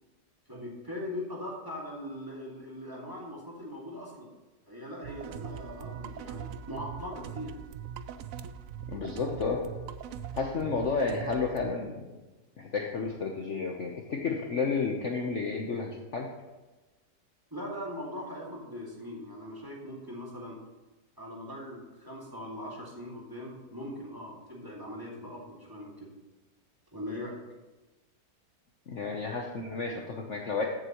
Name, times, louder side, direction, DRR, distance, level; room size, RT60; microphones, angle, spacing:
voice 1, 0.5-4.3 4.7-7.5 17.5-20.6 21.2-26.1 26.9-27.4, left 1 dB, 10° right, -4 dB, 2.0 m, -40 dB
sound 1, 5.0-11.7, right 8 dB, 70° right, 0.8 m, -41 dB
voice 2, 8.9-9.7 10.4-11.9 12.6-16.3 28.9-30.6, left 4 dB, 50° left, 1 dB, 1.0 m, -31 dB
14.0 x 8.0 x 3.0 m, 1.1 s
omnidirectional pair, 1.9 m